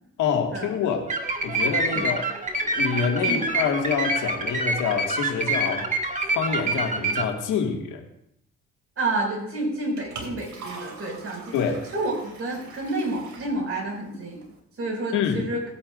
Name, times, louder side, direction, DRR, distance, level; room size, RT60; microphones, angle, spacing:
voice 1, 0.2-1.1 1.4-2.2 2.7-5.8 6.4-8.0 11.5-11.8 15.1-15.4, left 6 dB, 85° left, 2 dB, 1.9 m, -26 dB
sound 1, 1.1-7.2, right 2 dB, 25° right, 1.7 m, -26 dB
voice 2, 9.0-11.5 11.9-14.4 14.8-15.6, right 2 dB, 50° right, -1 dB, 5.3 m, -29 dB
Liquid, 9.6-14.6, right 3 dB, 70° right, 2.6 m, -43 dB
19.0 x 8.7 x 2.5 m, 0.74 s
cardioid pair, 90°, 30 cm